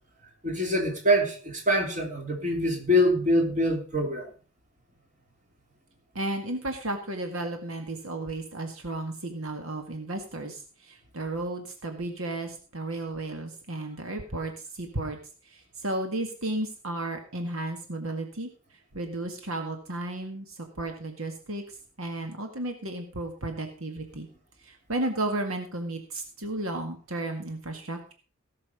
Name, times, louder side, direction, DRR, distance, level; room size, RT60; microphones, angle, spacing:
voice 1, 0.4-4.3, equal, 35° right, 3.4 m, -24 dB
voice 2, 6.2-15.2 15.5-18.5 18.9-21.6 22.0-24.3 24.6-28.1, right 2 dB, 75° right, 1.9 m, -33 dB
17.5 x 6.8 x 5.3 m
head